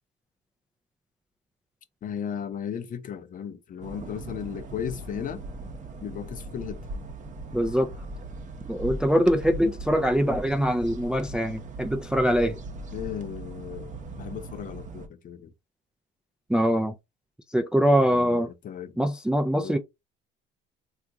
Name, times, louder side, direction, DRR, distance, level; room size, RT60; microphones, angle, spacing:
voice 1, 2.0-5.4 6.0-6.9 12.9-15.5 18.1-19.0 19.6-19.8, left 8 dB, 40° left, 0.6 m, -36 dB
sound 1, 3.8-15.1, right 2 dB, 35° right, 0.7 m, -39 dB
voice 2, 7.5-7.9 8.7-12.6 16.5-16.9 17.5-18.5 19.0-19.8, equal, 5° right, 0.3 m, -23 dB
3.5 x 2.4 x 2.8 m
supercardioid pair, 100°, 21 cm